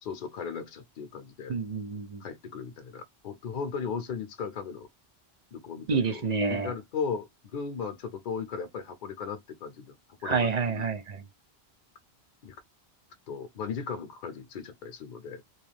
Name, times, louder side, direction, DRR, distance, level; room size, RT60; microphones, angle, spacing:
voice 1, 0.0-1.5 2.2-4.9 5.5-6.2 6.5-9.9 10.2-10.8 12.4-12.5 13.3-15.4, left 6 dB, 55° left, 0.6 m, -36 dB
voice 2, 1.5-2.2 5.9-6.7 10.3-11.2, right 5 dB, 55° right, 0.5 m, -28 dB
2.4 x 2.3 x 3.1 m
omnidirectional pair, 1.0 m